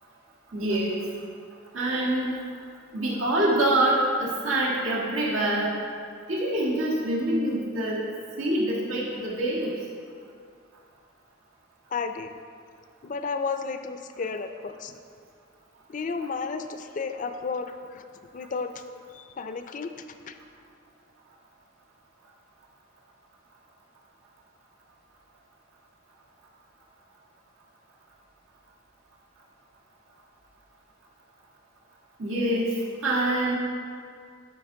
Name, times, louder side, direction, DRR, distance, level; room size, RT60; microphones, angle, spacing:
voice 1, 0.5-1.1 1.7-2.3 2.9-5.7 6.3-8.0 8.4-9.7 32.2-32.7 33.0-33.6, right 1 dB, 85° right, -5 dB, 1.5 m, -25 dB
voice 2, 11.9-12.3 13.0-14.9 15.9-18.1 18.3-18.7 19.1-19.9 20.3-20.4, left 4 dB, 40° left, 8 dB, 0.4 m, -32 dB
12.5 x 5.7 x 3.7 m, 2.2 s
head